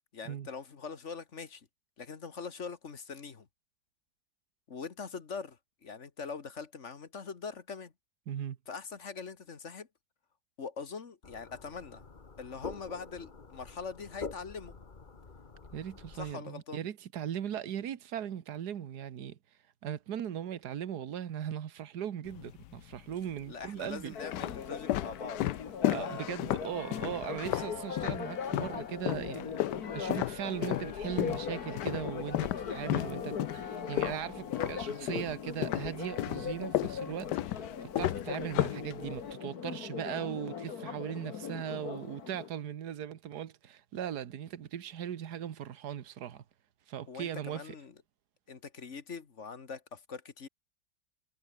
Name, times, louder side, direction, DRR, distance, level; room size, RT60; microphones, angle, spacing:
voice 1, 0.1-1.7 2.0-3.5 4.7-7.9 8.7-9.9 10.6-12.0 12.4-14.8 16.2-16.8 23.5-26.3 47.1-47.9 48.5-50.5, left 5 dB, 45° left, 1.8 m, -43 dB
voice 2, 8.3-8.6 15.7-19.4 19.8-24.1 25.9-46.4 46.9-47.7, right 9 dB, 70° right, 1.7 m, -39 dB
sound 1, 11.2-16.3, left 4 dB, 30° left, 1.6 m, -46 dB
sound 2, 22.3-23.0 23.7-28.8 29.1-35.3 35.6-39.3, left 14 dB, 90° left, 1.3 m, -33 dB
Church bell, 24.1-42.5, left 7 dB, 65° left, 2.1 m, -40 dB
omnidirectional pair, 1.8 m